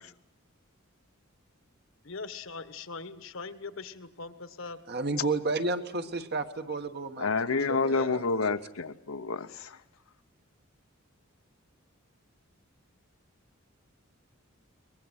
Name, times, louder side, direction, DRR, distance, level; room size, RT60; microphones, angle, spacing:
voice 1, 2.0-4.8 7.8-8.2, left 4 dB, 65° left, 12 dB, 1.3 m, -41 dB
voice 2, 4.9-7.3 7.7-7.8 8.1-8.2, right 3 dB, 50° right, 8 dB, 1.5 m, -31 dB
voice 3, 7.2-9.8, left 4 dB, 85° left, 10 dB, 0.9 m, -29 dB
23.0 x 21.0 x 8.1 m, 0.81 s
head